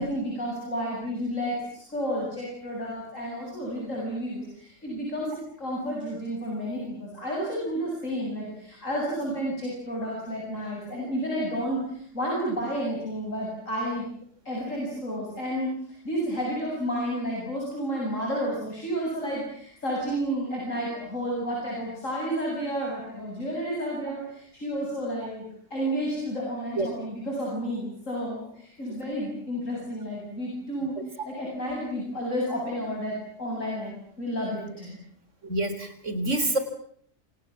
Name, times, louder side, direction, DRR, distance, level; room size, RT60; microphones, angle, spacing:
voice 1, 0.0-14.1 14.5-15.7 16.0-35.0, equal, 85° left, -3 dB, 8.7 m, -31 dB
voice 2, 35.4-36.6, right 2 dB, 70° right, 10 dB, 4.3 m, -27 dB
28.0 x 27.5 x 7.5 m, 0.66 s
omnidirectional pair, 1.3 m